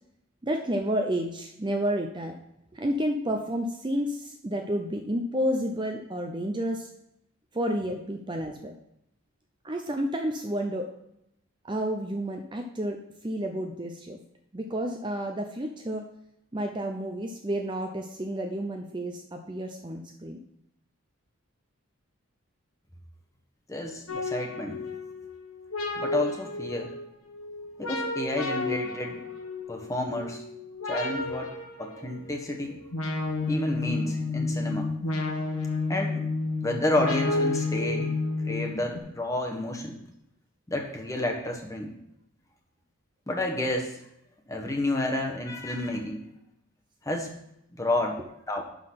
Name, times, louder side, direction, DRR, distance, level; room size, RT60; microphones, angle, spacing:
voice 1, 0.4-2.4 2.7-6.9 7.5-8.7 9.6-10.9 11.7-13.0 13.2-14.2 14.5-16.0 16.5-20.4 24.1-24.2 48.6-48.7, equal, 20° right, 3 dB, 0.6 m, -30 dB
voice 2, 23.7-24.8 26.0-26.9 27.8-29.2 29.7-30.4 30.9-32.8 33.5-34.9 35.9-36.3 36.6-38.2 38.5-40.0 40.7-41.9 43.3-44.0 44.5-46.3 47.1-47.3 47.7-48.2 48.5-48.6, left 1 dB, 15° left, 2 dB, 1.1 m, -30 dB
sound 1, 24.1-39.0, left 3 dB, 85° left, 1.4 m, -31 dB
11.5 x 3.9 x 5.8 m, 0.80 s
head